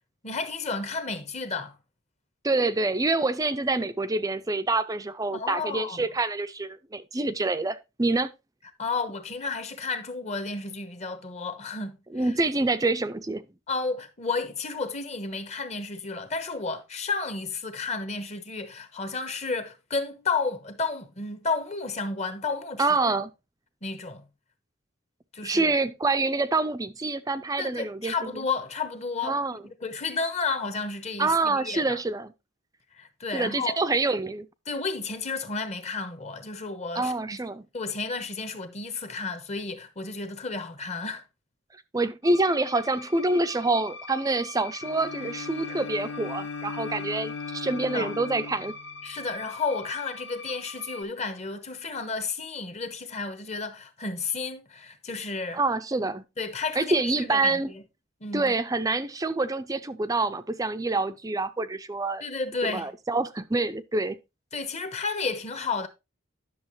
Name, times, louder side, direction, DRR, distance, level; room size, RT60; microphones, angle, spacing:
voice 1, 0.2-1.8 5.3-6.1 8.8-12.3 13.7-22.9 23.8-24.2 25.3-25.7 27.6-29.4 29.8-32.0 33.0-33.8 34.7-37.4 37.7-41.2 47.9-48.1 49.0-55.6 56.4-57.8 58.2-58.5 62.2-62.9 64.5-65.9, left 4 dB, 35° left, 1.1 m, -32 dB
voice 2, 2.4-8.3 12.1-13.5 22.8-23.3 25.4-28.3 29.2-29.6 31.2-32.3 33.3-34.5 36.9-37.6 41.9-48.7 55.5-56.2 56.8-57.7 58.3-62.2 62.6-64.2, right 3 dB, 20° right, 0.5 m, -26 dB
sound 1, 42.2-51.0, left 3 dB, 60° left, 1.5 m, -42 dB
Bowed string instrument, 44.8-49.4, left 5 dB, 85° left, 0.4 m, -38 dB
10.5 x 6.6 x 3.1 m
head